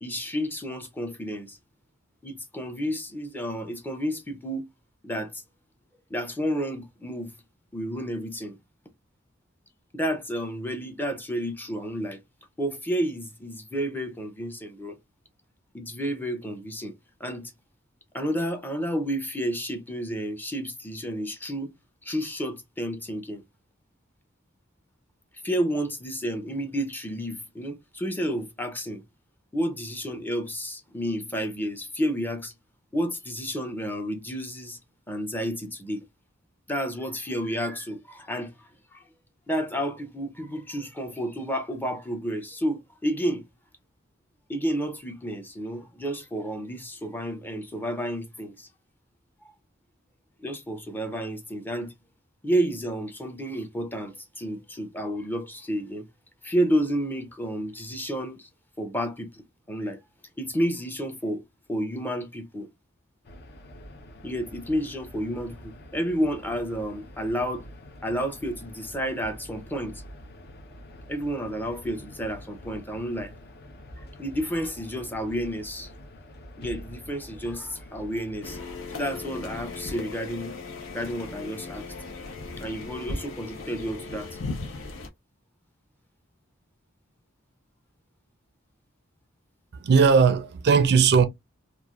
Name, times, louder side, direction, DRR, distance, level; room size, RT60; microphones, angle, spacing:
voice 1, 0.0-1.6 2.2-4.7 5.0-5.4 6.1-7.4 7.7-8.6 9.9-12.2 12.6-15.0 15.7-16.9 17.2-17.5 18.1-21.7 22.0-23.4 25.4-29.0 29.5-32.5 32.9-34.8 35.1-36.1 36.7-39.0 39.5-43.4 44.5-48.7 49.4-49.5 50.4-51.9 52.4-56.1 56.4-58.5 58.8-60.0 60.4-61.4 61.7-62.7 64.2-67.6 68.0-70.0 71.1-73.3 74.0-75.9 76.6-80.5 80.9-81.8 82.6-84.4, equal, 10° left, 0.5 m, -31 dB
sound 1, 63.2-78.6, left 1 dB, 50° left, 0.6 m, -46 dB
sound 2, 78.4-85.1, left 3 dB, 80° left, 0.8 m, -37 dB
voice 2, 89.7-91.2, right 5 dB, 55° right, 0.4 m, -18 dB
3.1 x 2.4 x 2.3 m
head